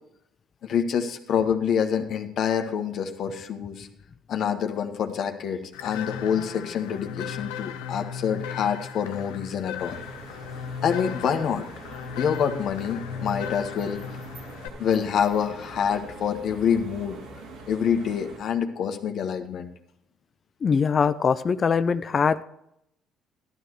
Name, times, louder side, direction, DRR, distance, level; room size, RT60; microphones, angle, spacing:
voice 1, 0.6-3.9 4.3-10.0 10.8-11.7 12.2-14.0 14.8-17.2 17.7-19.7, left 7 dB, 60° left, 5 dB, 1.4 m, -26 dB
sound 1, 5.7-14.7, left 7 dB, 85° left, 0.7 m, -37 dB
sound 2, 9.8-18.4, right 2 dB, 75° right, 2.9 m, -43 dB
voice 2, 20.6-22.4, left 6 dB, 45° left, 12 dB, 0.5 m, -22 dB
12.5 x 12.0 x 3.2 m, 0.77 s
hypercardioid pair, 60°, 0 cm